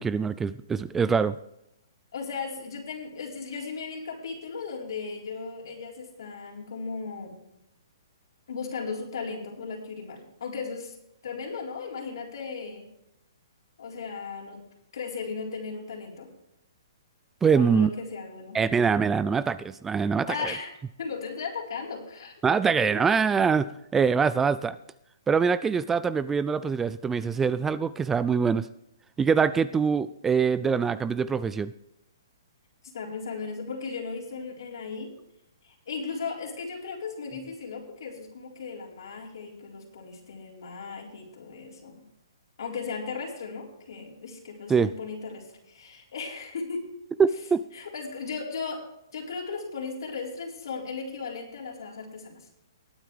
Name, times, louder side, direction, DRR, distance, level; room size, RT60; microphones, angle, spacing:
voice 1, 0.0-1.3 17.4-17.9 18.5-20.5 22.4-24.8 25.3-28.7 29.2-31.7 44.7-44.9 47.2-47.6, right 6 dB, 10° right, 16 dB, 0.4 m, -24 dB
voice 2, 2.1-7.4 8.5-11.0 11.2-12.9 13.8-14.6 14.9-16.3 17.5-18.6 20.3-20.7 21.0-22.3 22.8-22.9 32.9-35.1 35.6-42.0 42.6-46.8 47.7-48.8 49.1-52.5, left 5 dB, 70° left, -1 dB, 4.2 m, -36 dB
20.0 x 9.1 x 3.3 m, 0.80 s
hypercardioid pair, 145°, 2 cm